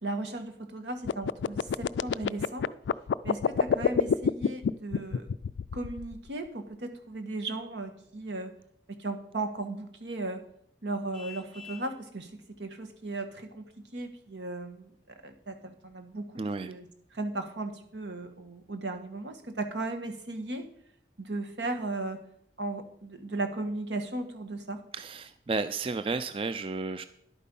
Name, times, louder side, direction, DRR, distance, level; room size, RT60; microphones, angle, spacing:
voice 1, 0.0-2.7 3.2-5.3 5.7-8.5 8.9-10.4 10.8-12.3 12.6-13.6 13.9-14.9 15.2-16.8 17.1-20.7 21.2-22.2 22.6-24.8, right 2 dB, 85° right, 6 dB, 1.5 m, -36 dB
sound 1, 1.0-6.3, left 6 dB, 85° left, 0.3 m, -27 dB
Vehicle horn car horn honking, 11.1-12.0, left 8 dB, 5° left, 0.9 m, -46 dB
voice 2, 16.4-16.7 24.9-27.0, right 3 dB, 30° right, 12 dB, 0.4 m, -32 dB
11.0 x 8.5 x 5.4 m, 0.68 s
head